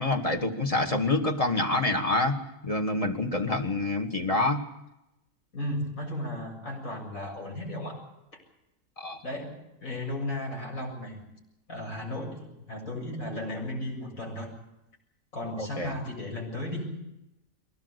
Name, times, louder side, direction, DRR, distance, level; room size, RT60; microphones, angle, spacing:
voice 1, 0.0-2.4 2.6-4.6 9.0-9.2 15.8-15.9, left 2 dB, 25° left, 4 dB, 2.2 m, -26 dB
voice 2, 5.5-8.0 8.3-8.4 9.2-11.3 11.7-14.5 15.3-17.0, left 1 dB, 75° left, 0 dB, 7.9 m, -35 dB
23.0 x 19.0 x 8.3 m, 0.90 s
omnidirectional pair, 1.4 m